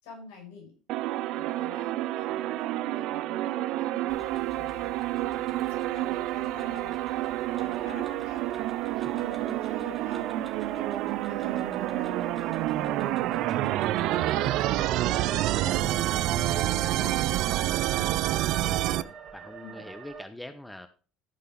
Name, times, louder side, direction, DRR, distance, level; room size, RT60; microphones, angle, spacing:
voice 1, 0.0-0.7 1.3-8.4 9.1-18.8 19.6-19.8, left 3 dB, 75° left, 0 dB, 6.3 m, -47 dB
sound 1, 0.9-19.0, right 15 dB, 65° right, 0.4 m, -28 dB
sound 2, 3.0-20.2, right 7 dB, 45° right, 1.5 m, -46 dB
Tick-tock, 4.1-17.0, right 2 dB, 15° right, 2.8 m, -51 dB
voice 2, 9.0-9.4 13.8-14.4 18.8-20.9, left 1 dB, 10° left, 10 dB, 1.0 m, -45 dB
13.5 x 5.6 x 3.9 m, 0.38 s
supercardioid pair, 80°, 0 cm